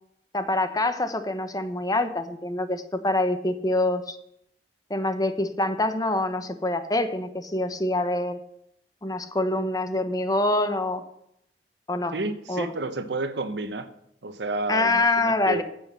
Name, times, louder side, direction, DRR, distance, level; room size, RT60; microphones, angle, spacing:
voice 1, 0.3-4.2 4.9-8.4 9.0-11.0 11.9-12.1 12.5-12.7 14.7-15.6, left 2 dB, 20° left, 9 dB, 1.0 m, -25 dB
voice 2, 12.1-13.9 14.2-15.6, right 2 dB, 80° right, 10 dB, 1.2 m, -30 dB
9.4 x 8.3 x 7.1 m, 0.76 s
head